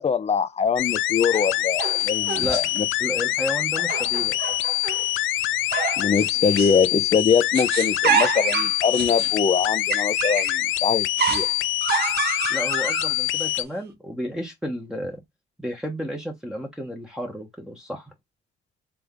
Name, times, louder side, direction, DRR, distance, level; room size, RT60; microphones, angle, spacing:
voice 1, 0.0-2.8 6.0-11.5, left 6 dB, 35° left, 0.6 m, -23 dB
sound 1, 0.8-13.6, left 16 dB, 80° left, 0.4 m, -25 dB
sound 2, 1.3-2.8 3.8-5.1 5.7-6.8 7.1-10.6 11.2-13.5, right 7 dB, 55° right, 1.2 m, -28 dB
voice 2, 3.0-4.4 12.5-15.2 15.6-18.1, equal, 5° right, 1.1 m, -32 dB
3.5 x 3.4 x 3.6 m
cardioid pair, 90°, 20 cm